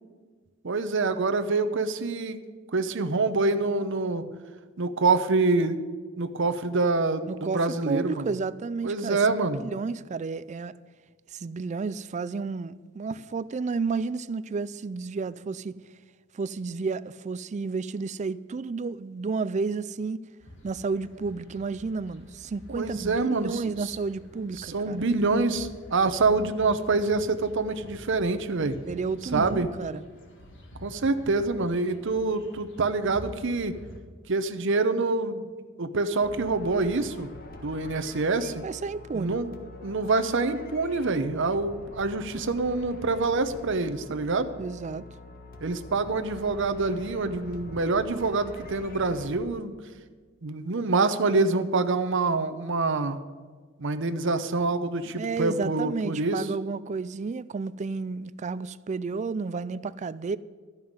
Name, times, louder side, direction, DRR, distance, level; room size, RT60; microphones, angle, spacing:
voice 1, 0.6-2.4 2.7-4.3 4.8-5.8 6.2-8.3 8.8-9.6 22.7-24.0 24.6-28.8 29.3-29.7 30.8-33.7 34.3-35.5 35.8-37.3 37.6-38.6 39.1-39.5 39.8-44.5 45.6-49.8 50.4-53.2 53.8-56.5, right 3 dB, 65° right, 0.8 m, -26 dB
voice 2, 7.3-9.2 9.5-10.7 11.3-15.8 16.3-20.2 20.6-25.0 28.9-30.0 38.6-39.4 44.6-45.0 55.2-60.4, right 4 dB, 35° right, 0.4 m, -31 dB
sound 1, 20.4-34.0, left 1 dB, 65° left, 1.8 m, -47 dB
sound 2, 36.2-49.4, left 2 dB, 45° left, 1.4 m, -45 dB
13.0 x 5.7 x 9.5 m
head